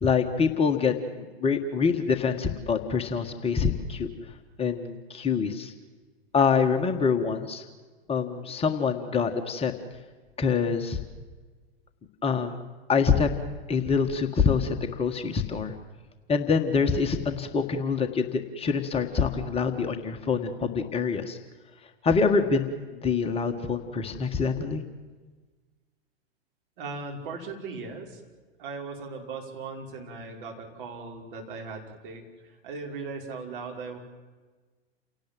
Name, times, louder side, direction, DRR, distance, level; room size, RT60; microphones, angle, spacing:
voice 1, 0.0-4.1 4.6-5.7 6.3-7.6 8.1-9.7 10.4-11.0 12.2-12.6 12.9-13.3 13.7-15.7 16.3-21.4 22.0-24.8, left 5 dB, 20° left, 5 dB, 1.7 m, -25 dB
voice 2, 26.8-28.2 28.6-34.0, right 4 dB, 55° right, 2 dB, 5.4 m, -38 dB
29.5 x 18.0 x 7.7 m, 1.4 s
figure-of-eight pair, 105°, 32 cm